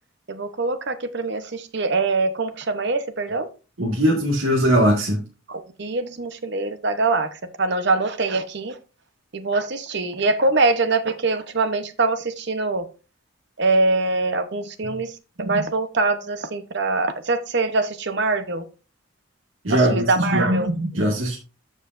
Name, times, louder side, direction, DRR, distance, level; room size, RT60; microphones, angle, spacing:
voice 1, 0.3-3.5 5.5-8.8 9.3-12.8 13.6-15.1 15.4-18.7 19.7-21.2, right 3 dB, 55° right, 0.9 m, -23 dB
voice 2, 3.8-5.2 19.6-20.5 21.0-21.4, right 1 dB, 85° right, 1.9 m, -20 dB
13.5 x 5.0 x 2.6 m
head